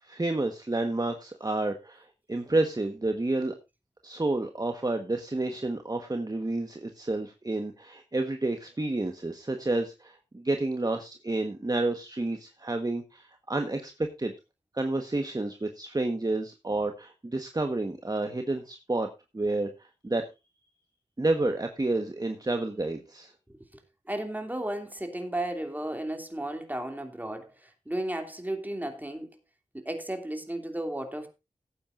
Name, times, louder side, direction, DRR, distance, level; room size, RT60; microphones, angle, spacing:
voice 1, 0.0-3.5 4.0-14.3 14.7-19.1 19.3-20.2 21.2-23.3, right 2 dB, 30° right, 1.3 m, -30 dB
voice 2, 24.1-29.3 29.7-31.3, right 1 dB, 15° right, 2.8 m, -34 dB
17.5 x 8.9 x 2.6 m
wide cardioid pair, 50°, 13 cm